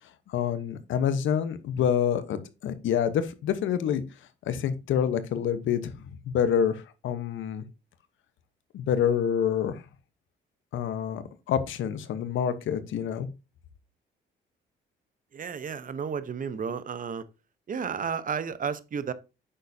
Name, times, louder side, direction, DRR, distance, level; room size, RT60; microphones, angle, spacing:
voice 1, 0.3-2.4 2.6-4.0 4.5-7.6 8.7-9.8 10.7-13.3, left 8 dB, 75° left, 1.1 m, -27 dB
voice 2, 15.3-17.2 17.7-19.1, right 6 dB, 45° right, 0.9 m, -32 dB
9.0 x 6.7 x 2.7 m
cardioid pair, 90°, 20 cm